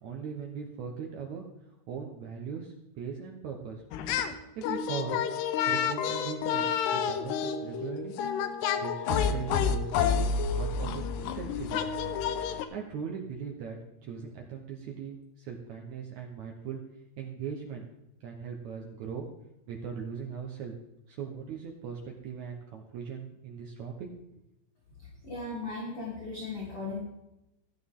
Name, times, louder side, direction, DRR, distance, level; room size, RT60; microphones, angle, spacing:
voice 1, 0.0-1.4 1.9-3.8 4.6-5.2 5.7-6.6 6.9-8.1 8.8-10.2 10.5-11.8 12.7-16.8 17.2-17.9 18.2-19.3 19.7-20.8 21.1-24.1, right 6 dB, 85° right, 1 dB, 1.6 m, -39 dB
sound 1, 3.9-4.4 4.6-12.7, left 7 dB, 75° left, 2.8 m, -29 dB
voice 2, 25.0-27.0, left 3 dB, 35° left, -6 dB, 3.7 m, -37 dB
15.0 x 13.0 x 3.7 m, 0.88 s
omnidirectional pair, 5.0 m